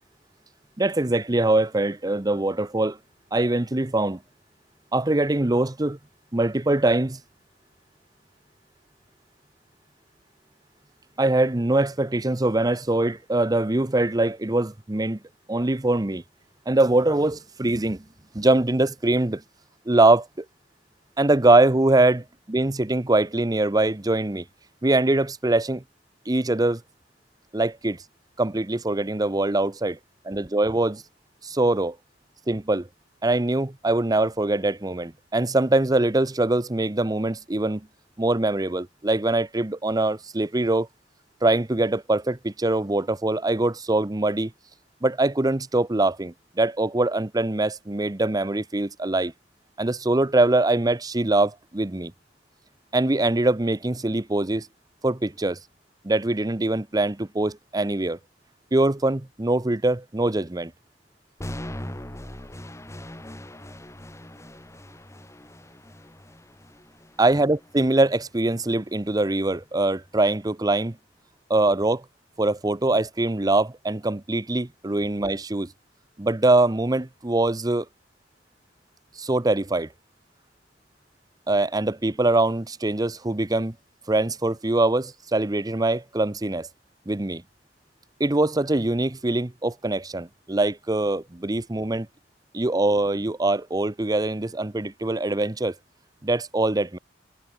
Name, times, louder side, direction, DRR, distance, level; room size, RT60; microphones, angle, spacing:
voice 1, 0.8-3.0 3.3-4.2 4.9-6.0 6.3-7.2 11.2-15.2 15.5-16.2 16.7-18.0 18.3-19.4 19.9-20.4 21.2-24.4 24.8-25.8 26.3-26.8 27.5-28.0 28.4-30.0 30.2-31.0 31.4-32.0 32.5-32.9 33.2-37.9 38.2-40.9 41.4-44.5 45.0-49.3 49.8-52.1 52.9-54.7 55.0-55.6 56.0-58.2 58.7-60.7 67.2-71.0 71.5-72.0 72.4-75.7 76.2-77.9 79.2-79.9 81.5-83.7 84.1-86.7 87.1-87.4 88.2-92.1 92.5-95.7 96.2-97.0, right 2 dB, 20° right, 0.8 m, -23 dB
sound 1, 61.4-69.4, left 1 dB, 15° left, 2.4 m, -41 dB
head